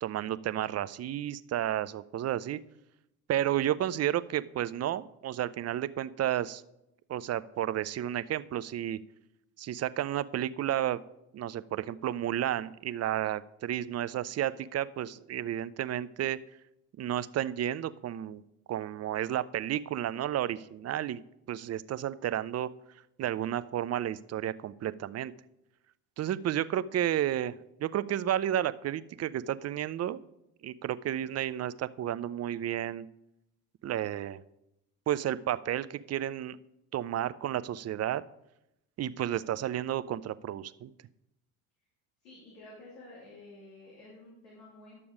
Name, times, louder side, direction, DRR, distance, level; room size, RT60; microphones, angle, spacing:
voice 1, 0.0-2.6 3.3-6.6 7.1-9.0 9.6-11.0 11.3-16.4 17.0-18.4 18.7-21.2 21.5-22.7 23.2-25.3 26.2-27.5 27.8-30.2 30.6-33.1 33.8-34.4 35.1-36.6 36.9-38.2 39.0-40.9, right 11 dB, 35° right, 16 dB, 0.5 m, -32 dB
voice 2, 42.2-45.0, left 2 dB, 85° left, -5 dB, 2.9 m, -51 dB
11.0 x 6.9 x 5.0 m, 0.86 s
hypercardioid pair, 60°, 44 cm